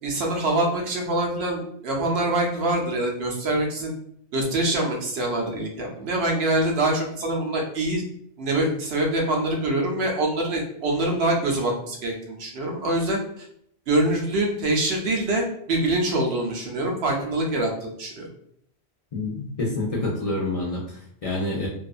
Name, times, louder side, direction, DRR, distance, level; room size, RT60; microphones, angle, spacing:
voice 1, 0.0-3.9 4.3-8.0 8.4-13.5 13.9-18.3, right 1 dB, 75° right, 0 dB, 0.9 m, -25 dB
voice 2, 19.1-21.7, left 2 dB, 45° left, -4 dB, 0.5 m, -28 dB
2.6 x 2.3 x 2.3 m, 0.67 s
omnidirectional pair, 1.1 m